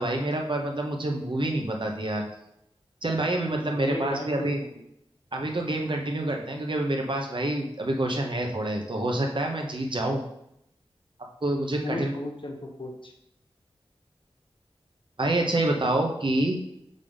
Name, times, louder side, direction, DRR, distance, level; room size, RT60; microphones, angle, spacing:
voice 1, 0.0-2.2 3.0-4.6 5.3-10.2 11.4-12.1 15.2-16.6, right 1 dB, 55° right, 2 dB, 1.0 m, -27 dB
voice 2, 3.7-4.7 11.8-13.1, left 1 dB, 55° left, 2 dB, 1.0 m, -35 dB
5.3 x 3.6 x 5.3 m, 0.78 s
wide cardioid pair, 60°, 10 cm